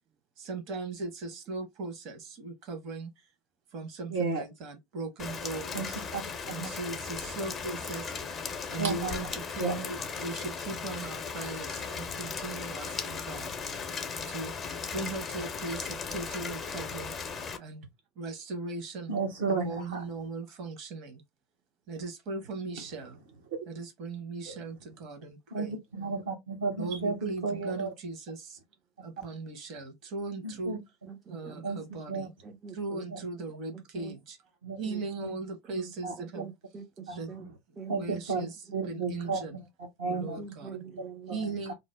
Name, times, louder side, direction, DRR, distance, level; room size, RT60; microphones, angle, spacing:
voice 1, 0.4-3.1 3.7-6.0 6.5-8.2 8.6-13.5 14.3-14.5 14.9-17.1 17.6-17.8 18.2-19.1 19.5-21.2 21.9-23.2 23.7-25.8 26.8-28.6 29.0-30.8 31.3-32.3 32.7-34.4 34.8-36.5 37.1-37.5 37.8-39.6 40.0-40.8 41.3-41.7, right 3 dB, 50° right, 1.0 m, -38 dB
voice 2, 4.1-4.4 5.7-5.9 6.1-6.2 6.6-6.7 8.8-9.2 9.6-9.8 19.1-20.0 24.5-24.6 25.5-27.9 30.4-30.8 31.6-31.8 32.1-32.3 33.1-33.2 34.6-34.8 35.2-35.3 36.0-36.1 37.1-37.2 37.9-38.5 38.7-39.4 40.0-40.4 41.3-41.7, right 4 dB, 75° right, 0.9 m, -32 dB
Rain, 5.2-17.6, left 5 dB, 30° left, 0.6 m, -37 dB
voice 3, 31.1-32.0 32.4-33.1 33.9-34.1 34.8-35.0 35.3-35.4 35.7-35.9 36.3-37.5 37.8-38.0 38.8-38.9 39.2-39.4 40.1-41.4, right 6 dB, 30° right, 0.5 m, -44 dB
2.6 x 2.0 x 3.4 m
hypercardioid pair, 80°, 0 cm